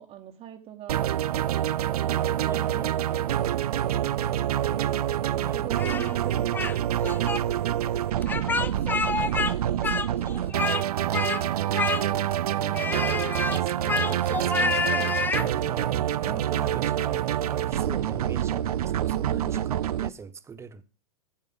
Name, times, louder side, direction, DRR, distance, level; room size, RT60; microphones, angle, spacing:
voice 1, 0.0-4.9 5.5-8.6 9.2-11.7, right 10 dB, 35° right, 1.3 m, -44 dB
sound 1, 0.9-20.1, right 11 dB, 80° right, 0.5 m, -27 dB
voice 2, 2.4-2.9 5.4-5.6 8.3-8.4 9.2-9.9 10.2-10.3 12.5-20.8, right 5 dB, 15° right, 0.8 m, -41 dB
Speech, 5.8-6.7 7.0-7.4 8.2-9.5 9.8-10.8 11.1-11.4 11.7-12.3 12.7-15.5, left 4 dB, 10° left, 0.5 m, -28 dB
12.5 x 8.9 x 3.5 m
hypercardioid pair, 115°, 19 cm